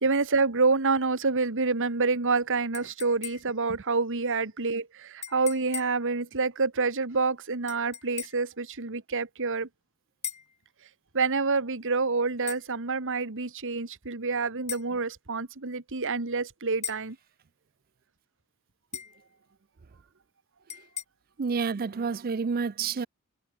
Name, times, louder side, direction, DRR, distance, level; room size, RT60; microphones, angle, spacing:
voice 1, 0.0-9.7 11.1-17.2, right 4 dB, 60° right, 1.8 m, -27 dB
sound 1, 2.7-3.7 5.2-6.1 7.7-8.5 10.2-10.6 12.5-12.7 14.7-14.9 16.8-17.1 18.9-19.2 20.7-21.0, left 9 dB, 30° left, 3.7 m, -39 dB
voice 2, 21.4-23.1, right 5 dB, 40° right, 0.5 m, -29 dB
head